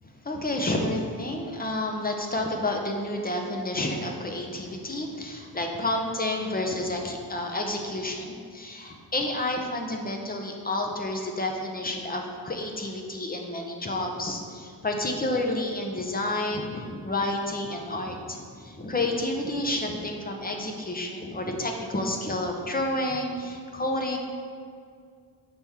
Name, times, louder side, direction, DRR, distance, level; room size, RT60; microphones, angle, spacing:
voice 1, 0.2-24.2, left 1 dB, 20° left, 1 dB, 0.6 m, -30 dB
6.1 x 3.5 x 5.5 m, 2.2 s
wide cardioid pair, 130°, 42 cm